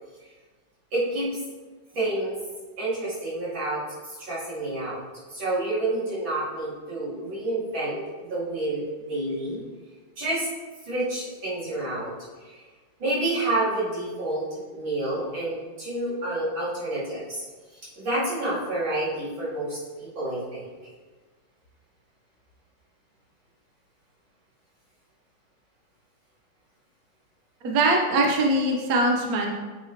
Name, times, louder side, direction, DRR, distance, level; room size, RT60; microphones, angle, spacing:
voice 1, 0.9-1.4 1.9-2.3 2.8-5.0 5.3-9.6 10.2-10.5 10.8-12.1 12.4-12.6 13.0-17.4 17.7-20.7, right 2 dB, 80° right, -9 dB, 3.1 m, -29 dB
voice 2, 27.6-29.5, right 2 dB, 60° right, 1 dB, 1.1 m, -22 dB
7.7 x 5.3 x 3.0 m, 1.4 s
omnidirectional pair, 2.1 m